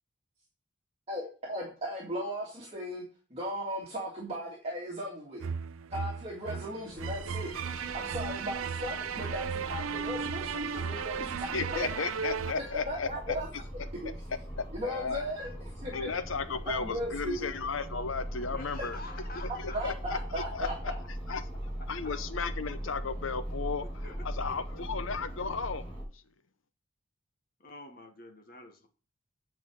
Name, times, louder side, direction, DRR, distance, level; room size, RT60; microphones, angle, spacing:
voice 1, 1.1-3.0 3.3-5.4 5.9-12.0 12.9-13.5 14.0-14.1 14.7-16.1 16.7-17.5 19.7-20.9, equal, 30° right, -3 dB, 2.1 m, -37 dB
sound 1, 5.4-12.5, right 6 dB, 85° right, 0.4 m, -35 dB
sound 2, 6.9-26.0, equal, 5° left, 5.5 m, -41 dB
Trumpet, 7.3-13.0, left 4 dB, 30° left, 1.3 m, -52 dB
voice 2, 10.1-12.5 13.3-13.6 18.5-20.7 21.3-21.4 22.0-22.1 24.0-24.6 27.6-28.9, left 3 dB, 45° left, 4 dB, 1.6 m, -49 dB
voice 3, 11.5-13.4 14.3-15.2 15.9-19.0 19.4-20.2 20.5-20.9 21.3-21.4 21.9-23.9 24.2-25.9, left 5 dB, 80° left, 12 dB, 0.7 m, -34 dB
9.0 x 5.0 x 6.3 m, 0.39 s
head